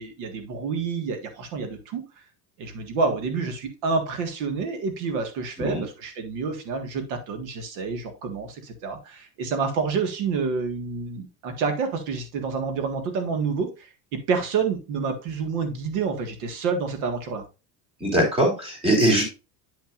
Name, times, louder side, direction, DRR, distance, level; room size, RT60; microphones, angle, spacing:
voice 1, 0.0-2.0 2.6-17.4, right 5 dB, 85° right, 6 dB, 1.8 m, -28 dB
voice 2, 18.0-19.2, right 1 dB, 15° right, 0 dB, 3.1 m, -21 dB
10.0 x 5.9 x 2.5 m, 0.29 s
cardioid pair, 175°, 36 cm